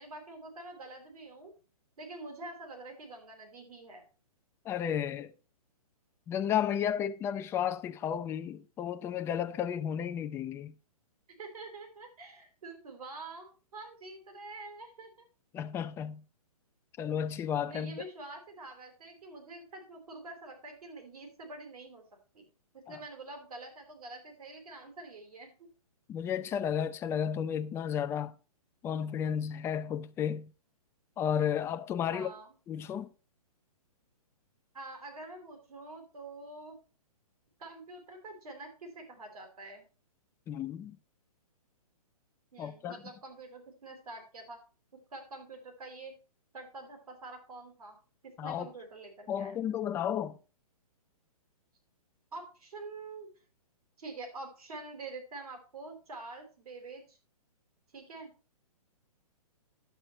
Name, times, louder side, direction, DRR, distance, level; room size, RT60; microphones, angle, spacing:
voice 1, 0.0-1.5 2.0-4.0 11.4-15.3 17.7-22.0 22.3-22.4 22.7-25.7 32.1-32.5 34.7-36.8 37.6-39.8 42.5-44.6 45.1-46.1 46.5-48.0 48.2-49.6 52.3-53.3 54.0-57.2 57.9-58.3, right 2 dB, 75° right, 4.1 m, -46 dB
voice 2, 4.6-5.3 6.3-10.7 15.5-16.2 17.0-18.0 22.9-23.0 26.1-28.3 28.8-30.5 31.2-32.3 32.7-33.1 40.5-41.0 42.6-43.0 48.4-48.7 49.3-50.4, left 9 dB, 15° left, 0.4 m, -33 dB
10.5 x 7.8 x 4.3 m
hypercardioid pair, 135°, 19 cm